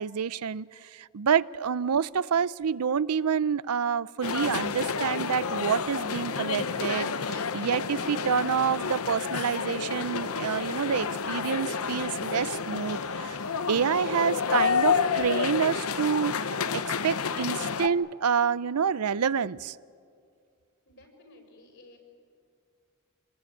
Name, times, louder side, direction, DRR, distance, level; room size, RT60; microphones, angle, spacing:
voice 1, 0.0-13.4 13.7-16.3 16.7-19.8, right 7 dB, 90° right, 18 dB, 0.5 m, -28 dB
sound 1, 4.2-17.9, left 5 dB, 70° left, 0.9 m, -30 dB
voice 2, 20.9-22.0, left 2 dB, 55° left, 2 dB, 5.8 m, -54 dB
27.5 x 20.5 x 9.0 m, 2.3 s
head